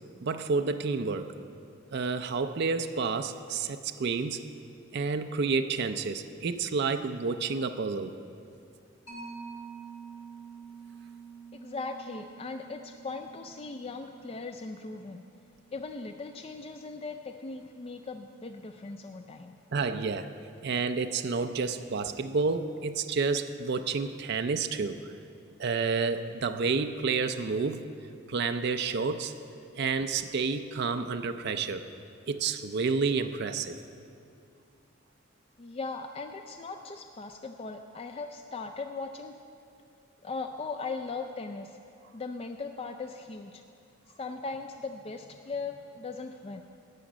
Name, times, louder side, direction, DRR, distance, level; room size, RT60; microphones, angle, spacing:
voice 1, 0.2-1.3 1.9-4.4 4.9-8.1 19.7-20.3 20.6-25.0 25.6-27.8 28.3-29.3 29.8-31.8 32.3-33.8, right 4 dB, 55° right, 8 dB, 0.4 m, -29 dB
Mallet percussion, 9.1-16.1, right 5 dB, 65° left, 2.8 m, -48 dB
voice 2, 11.5-15.2 15.7-19.5 35.6-39.3 40.2-41.8 42.1-43.6 44.2-46.6, left 3 dB, 30° left, 6 dB, 0.3 m, -39 dB
13.0 x 5.1 x 8.6 m, 2.5 s
head